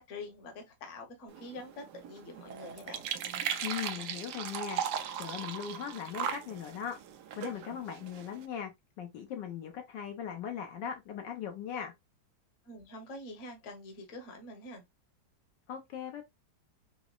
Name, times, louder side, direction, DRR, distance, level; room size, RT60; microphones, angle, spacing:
voice 1, 0.0-3.1 12.7-14.8, left 2 dB, 50° left, 1.1 m, -46 dB
sound 1, 1.3-8.5, right 9 dB, 75° right, 1.0 m, -38 dB
voice 2, 3.6-7.0 7.4-8.7 9.0-11.9 15.7-16.2, left 8 dB, 75° left, 1.3 m, -39 dB
4.7 x 2.0 x 2.3 m
omnidirectional pair, 2.0 m